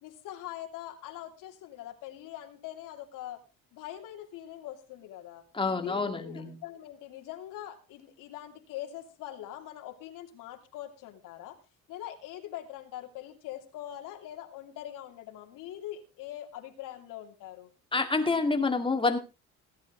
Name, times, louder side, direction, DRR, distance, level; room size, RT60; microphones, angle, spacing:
voice 1, 0.0-3.4 3.7-5.4 5.8-11.6 11.9-17.7, left 12 dB, 80° left, 4 dB, 3.0 m, -43 dB
voice 2, 5.5-6.6 17.9-19.2, left 3 dB, 15° left, 6 dB, 2.3 m, -27 dB
17.0 x 10.5 x 3.9 m, 0.30 s
cardioid pair, 115°, 32 cm